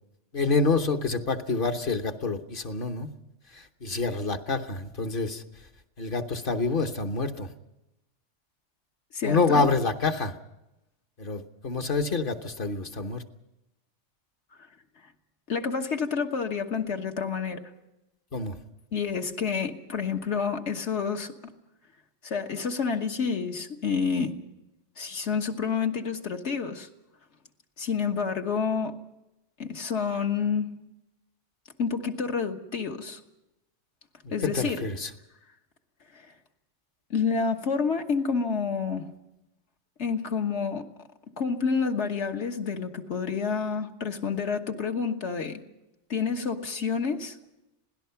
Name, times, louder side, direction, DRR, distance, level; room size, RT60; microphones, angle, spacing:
voice 1, 0.3-3.1 3.8-5.4 6.0-7.5 9.2-10.3 11.2-13.2 18.3-18.5 34.5-35.1, left 3 dB, 45° left, 6 dB, 1.2 m, -27 dB
voice 2, 9.1-9.7 15.5-17.6 18.9-21.5 22.2-24.4 25.0-26.9 27.8-29.0 29.6-30.7 31.8-33.2 34.3-34.8 36.1-36.3 37.1-39.1 40.0-40.9 41.4-45.6 46.1-47.4, left 5 dB, 65° left, 4 dB, 1.6 m, -29 dB
26.5 x 17.5 x 5.8 m, 0.93 s
omnidirectional pair, 1.3 m